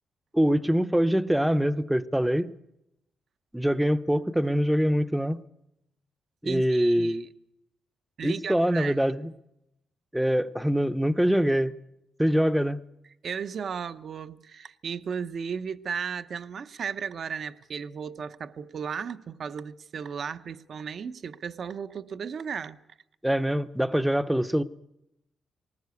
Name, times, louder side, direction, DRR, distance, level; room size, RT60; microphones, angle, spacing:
voice 1, 0.3-2.5 3.5-5.4 6.4-7.3 8.2-9.3 10.1-11.7 12.2-12.8 23.2-24.6, equal, 5° right, 0.7 m, -24 dB
voice 2, 6.4-7.2 8.2-9.0 13.2-22.8, right 6 dB, 55° right, 0.7 m, -35 dB
19.5 x 19.5 x 8.2 m
cardioid pair, 120°, 0 cm